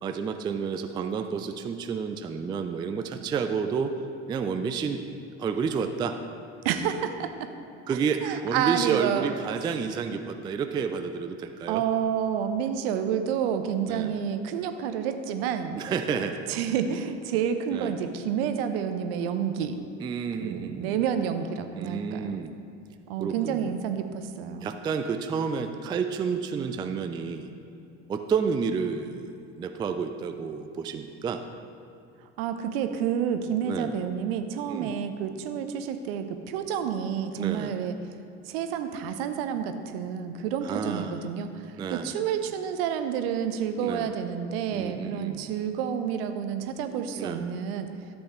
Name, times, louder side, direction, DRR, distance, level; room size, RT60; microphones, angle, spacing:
voice 1, 0.0-3.9 4.3-5.0 5.4-6.2 7.9-11.8 13.9-14.2 15.8-16.4 17.7-17.9 20.0-20.9 21.8-22.5 23.2-23.7 24.6-27.5 28.1-29.3 29.6-31.4 33.6-33.9 34.7-34.9 37.4-37.7 40.6-41.2 41.8-42.1 43.8-44.1 44.7-45.5 47.2-47.4, right 6 dB, 15° right, 7 dB, 0.3 m, -30 dB
voice 2, 6.6-7.5 7.9-9.3 11.7-15.8 16.5-19.8 20.4-22.4 23.1-24.7 32.4-38.1 38.4-47.9, right 8 dB, 55° right, 8 dB, 0.7 m, -29 dB
13.0 x 8.0 x 3.1 m, 2.7 s
figure-of-eight pair, 65°, 35 cm